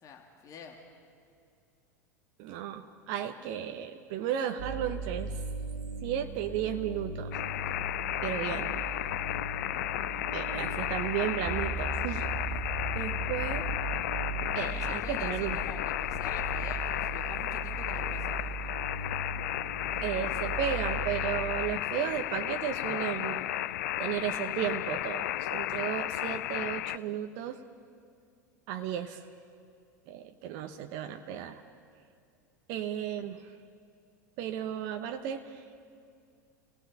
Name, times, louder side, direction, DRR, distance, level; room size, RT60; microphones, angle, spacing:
voice 1, 0.0-0.8 14.5-18.4, left 5 dB, 35° left, 2 dB, 2.5 m, -47 dB
voice 2, 2.4-5.3 6.0-7.4 8.2-8.8 10.3-12.3 12.9-13.7 14.5-15.6 20.0-23.4 24.0-27.6 28.7-29.2 30.1-31.6 32.7-33.5 34.4-35.6, right 10 dB, 50° right, 7 dB, 1.0 m, -34 dB
sound 1, 4.6-21.7, right 3 dB, 75° right, 2.2 m, -39 dB
sound 2, 7.3-27.0, left 14 dB, 60° left, 0.4 m, -33 dB
sound 3, 11.5-17.7, right 6 dB, 20° right, 0.7 m, -40 dB
29.0 x 17.5 x 5.5 m, 2.3 s
figure-of-eight pair, 80°, 10 cm